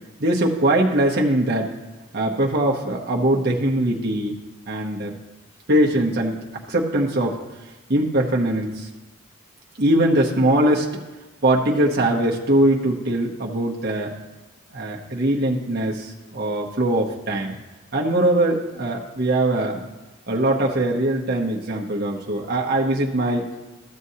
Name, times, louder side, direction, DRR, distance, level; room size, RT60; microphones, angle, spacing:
voice 1, 0.2-1.7 2.1-4.3 4.7-5.1 5.7-7.4 7.9-8.9 9.8-10.9 11.4-14.1 14.7-17.5 17.9-19.8 20.3-23.5, right 1 dB, 50° right, -2 dB, 0.9 m, -21 dB
13.5 x 7.6 x 2.8 m, 1.1 s
head